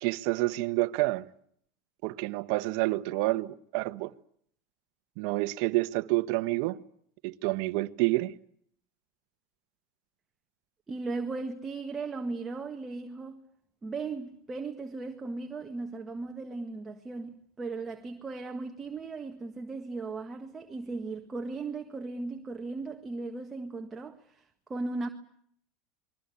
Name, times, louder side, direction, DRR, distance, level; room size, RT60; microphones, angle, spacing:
voice 1, 0.0-1.3 2.0-4.1 5.2-6.8 7.2-8.3, right 20 dB, 60° right, 1.2 m, -28 dB
voice 2, 10.9-13.4 13.8-25.1, right 3 dB, 15° right, 1.7 m, -37 dB
28.5 x 22.0 x 8.3 m
supercardioid pair, 135°, 0 cm